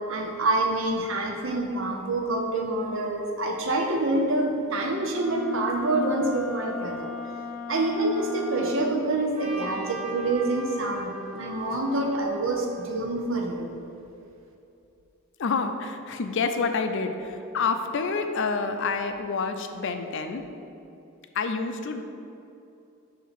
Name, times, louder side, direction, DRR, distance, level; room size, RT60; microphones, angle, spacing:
voice 1, 0.1-7.1 7.7-13.7, right 2 dB, 60° right, 1 dB, 0.8 m, -27 dB
Wind instrument woodwind instrument, 5.1-9.1, left 3 dB, 5° left, 0.5 m, -36 dB
Trumpet, 9.3-13.5, right 1 dB, 35° right, 1.0 m, -40 dB
voice 2, 15.4-20.4 21.3-22.0, left 4 dB, 60° left, 7 dB, 0.4 m, -28 dB
7.0 x 2.8 x 5.8 m, 2.7 s
head